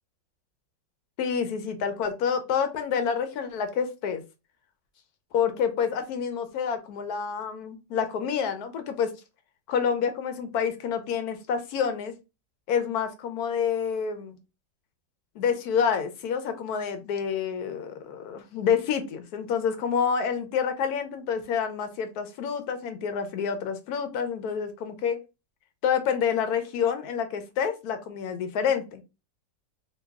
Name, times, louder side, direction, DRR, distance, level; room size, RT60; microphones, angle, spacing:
voice 1, 1.2-4.2 5.3-9.1 9.7-12.1 12.7-14.4 15.4-25.2 25.8-29.0, left 7 dB, 70° left, 8 dB, 1.0 m, -28 dB
3.1 x 2.2 x 3.4 m, 0.27 s
omnidirectional pair, 1.9 m